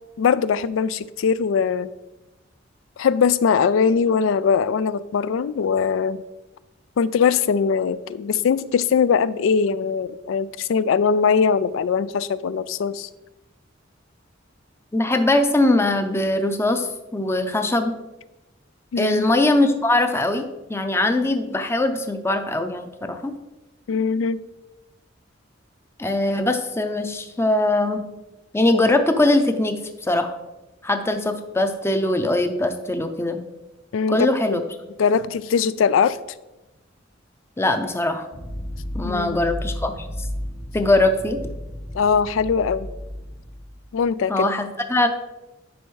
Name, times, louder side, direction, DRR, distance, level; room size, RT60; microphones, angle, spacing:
voice 1, 0.2-1.9 3.0-6.2 7.0-13.1 18.9-19.2 23.9-24.4 33.9-34.2 34.5-34.6 35.0-36.2 39.0-39.4 41.9-42.9 43.9-44.5, left 6 dB, 85° left, 17 dB, 0.3 m, -21 dB
voice 2, 14.9-17.9 19.0-23.3 26.0-28.0 28.5-29.8 30.0-30.3 30.8-33.4 34.1-34.6 37.6-38.3 38.9-40.1 40.7-41.4 44.3-45.1, left 2 dB, 15° left, 7 dB, 0.5 m, -21 dB
sound 1, 38.3-44.0, equal, 65° left, 1.4 m, -33 dB
10.0 x 5.3 x 3.2 m, 1.0 s
head